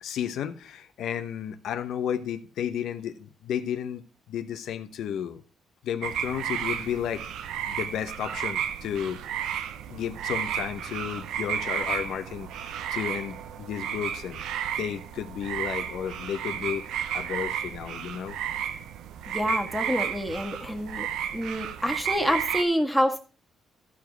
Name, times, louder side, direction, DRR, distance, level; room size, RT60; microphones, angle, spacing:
voice 1, 0.0-4.0 4.3-5.4 5.8-7.3 7.7-9.2 9.9-14.4 14.8-16.8 17.1-18.4, left 9 dB, 75° left, 1.0 m, -33 dB
sound 1, 6.0-22.6, right 9 dB, 85° right, 0.7 m, -33 dB
voice 2, 19.3-21.1 21.3-23.2, equal, 5° left, 1.7 m, -27 dB
14.5 x 5.0 x 4.6 m
cardioid pair, 90°, 0 cm